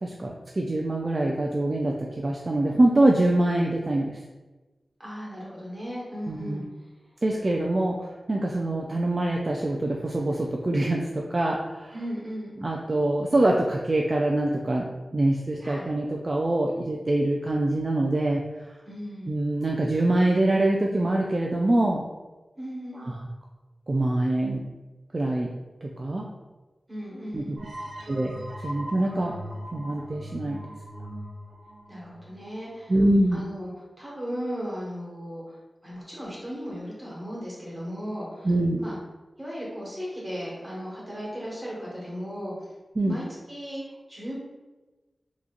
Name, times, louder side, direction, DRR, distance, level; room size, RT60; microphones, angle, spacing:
voice 1, 0.0-4.2 6.3-6.6 7.2-11.9 12.6-18.4 19.3-22.0 23.0-23.1 23.9-24.6 25.1-25.5 25.8-26.3 27.3-27.6 28.1-28.4 28.6-29.4 29.7-30.6 32.9-33.4 38.4-38.8 43.0-43.2, right 1 dB, 40° right, -1 dB, 0.3 m, -24 dB
voice 2, 5.0-6.6 11.9-12.6 15.6-15.9 18.8-19.4 22.6-23.1 26.9-27.6 31.9-32.9 33.3-33.7 34.0-35.6 35.8-38.5 38.8-39.0 39.4-42.5 43.1-44.3, equal, 15° right, -6 dB, 1.4 m, -36 dB
sound 1, 27.6-33.0, equal, 75° right, 0.7 m, -40 dB
3.8 x 2.9 x 2.4 m, 1.2 s
wide cardioid pair, 80°, 0 cm